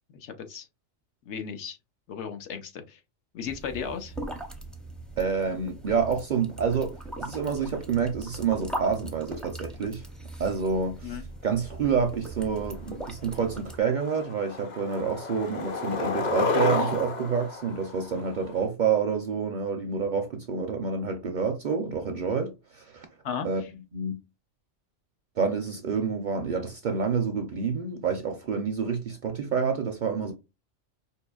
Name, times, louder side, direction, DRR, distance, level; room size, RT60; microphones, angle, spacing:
voice 1, 0.1-0.7 1.3-1.8 2.1-3.0 3.3-4.1 11.0-11.2 23.2-23.7, left 7 dB, 75° left, 1.0 m, -35 dB
sound 1, 3.4-13.8, right 1 dB, ahead, 0.3 m, -40 dB
voice 2, 5.2-10.0 10.4-11.2 11.4-23.1 23.4-23.6 23.9-24.2 25.4-30.3, right 5 dB, 55° right, 0.5 m, -28 dB
Skateboard, 12.9-13.0 13.4-13.7 14.0-18.6, left 4 dB, 45° left, 0.7 m, -31 dB
4.7 x 2.8 x 2.2 m
omnidirectional pair, 1.2 m